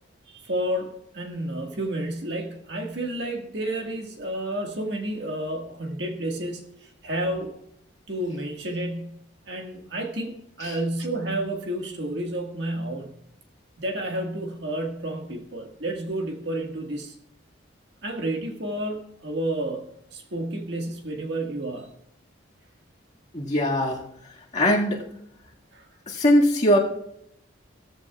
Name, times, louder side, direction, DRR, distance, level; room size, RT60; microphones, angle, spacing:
voice 1, 0.3-7.6 8.1-13.1 13.8-17.1 18.0-19.9 20.1-21.9 25.7-25.9, right 1 dB, 55° right, 2 dB, 1.8 m, -31 dB
voice 2, 23.3-24.0 24.5-25.1 26.1-26.8, equal, 35° left, -2 dB, 2.0 m, -21 dB
16.0 x 14.0 x 2.4 m, 0.74 s
head